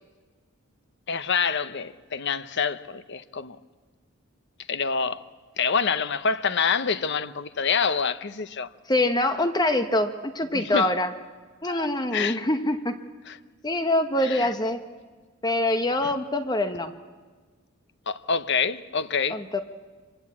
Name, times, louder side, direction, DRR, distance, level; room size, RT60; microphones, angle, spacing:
voice 1, 1.1-3.6 4.7-5.3 5.6-8.7 10.5-10.9 11.7-12.4 13.3-13.4 14.2-14.5 16.0-16.1 18.1-19.4, left 6 dB, 55° left, 0.8 m, -27 dB
voice 2, 8.9-11.1 11.6-13.0 13.6-14.8 15.4-16.9 19.3-19.6, left 1 dB, 20° left, 1.0 m, -24 dB
25.5 x 23.0 x 8.6 m
head